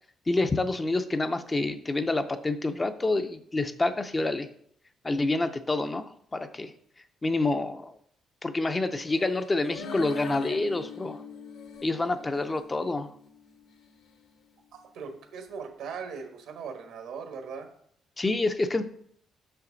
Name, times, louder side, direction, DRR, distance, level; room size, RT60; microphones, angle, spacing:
voice 1, 0.3-4.5 5.0-6.1 6.3-6.7 7.2-8.0 8.4-11.2 11.8-13.1 18.2-18.8, left 2 dB, 20° left, 9 dB, 0.5 m, -27 dB
sound 1, 9.1-12.1 12.6-12.7, left 5 dB, 90° left, 0.7 m, -44 dB
Guitar, 9.8-14.3, left 5 dB, 60° left, 1.0 m, -44 dB
voice 2, 14.9-17.7, right 6 dB, 80° right, 5 dB, 1.3 m, -39 dB
6.6 x 5.7 x 3.9 m, 0.65 s
cardioid pair, 125°, 0 cm